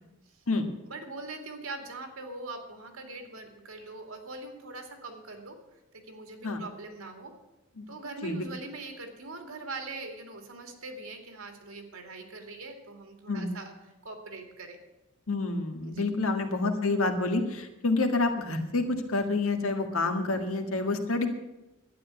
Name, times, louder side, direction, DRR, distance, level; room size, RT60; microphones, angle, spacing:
voice 1, 0.8-5.6 5.9-7.3 7.9-13.7 14.0-14.8 15.8-16.1, right 3 dB, 75° right, 4 dB, 2.5 m, -42 dB
voice 2, 15.3-21.3, left 3 dB, 70° left, 5 dB, 1.8 m, -28 dB
12.0 x 9.7 x 8.4 m, 0.99 s
head